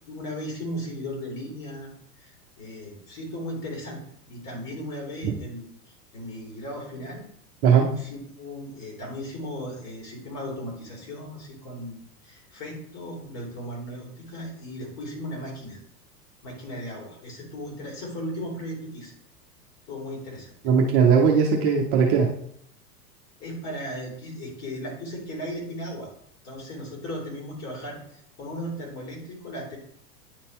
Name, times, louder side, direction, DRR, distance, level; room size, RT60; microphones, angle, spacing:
voice 1, 0.1-4.0 4.3-7.3 7.9-15.8 16.4-19.1 19.9-20.5 23.4-26.1 26.4-29.8, equal, 35° left, -2 dB, 2.9 m, -36 dB
voice 2, 7.6-8.0 20.6-22.4, right 6 dB, 30° right, 0 dB, 0.7 m, -19 dB
9.5 x 4.2 x 3.2 m, 0.67 s
figure-of-eight pair, 95°, 47 cm